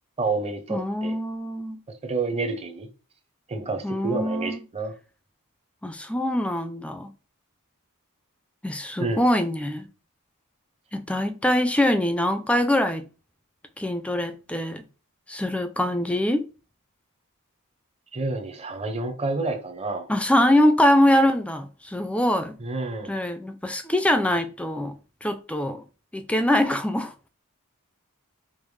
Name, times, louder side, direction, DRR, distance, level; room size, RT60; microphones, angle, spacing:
voice 1, 0.2-1.1 2.0-2.9 3.5-4.9 9.0-9.2 18.1-20.1 22.6-23.1, right 3 dB, 30° right, 0.6 m, -29 dB
voice 2, 0.7-1.8 3.8-4.6 5.8-7.1 8.6-9.9 10.9-13.0 13.8-14.9 15.3-16.4 20.1-22.6 23.1-25.8 26.1-27.1, left 1 dB, 5° left, 0.3 m, -23 dB
5.1 x 2.0 x 3.1 m
head